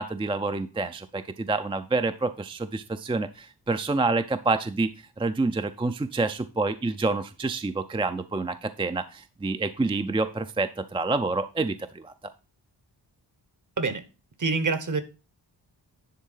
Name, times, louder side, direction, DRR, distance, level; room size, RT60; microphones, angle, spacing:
voice 1, 0.0-4.9 5.2-12.1, right 3 dB, 15° right, 9 dB, 0.4 m, -28 dB
voice 2, 14.4-15.0, right 4 dB, 45° right, 11 dB, 1.1 m, -26 dB
10.5 x 3.7 x 5.5 m, 0.32 s
wide cardioid pair, 135°, 42 cm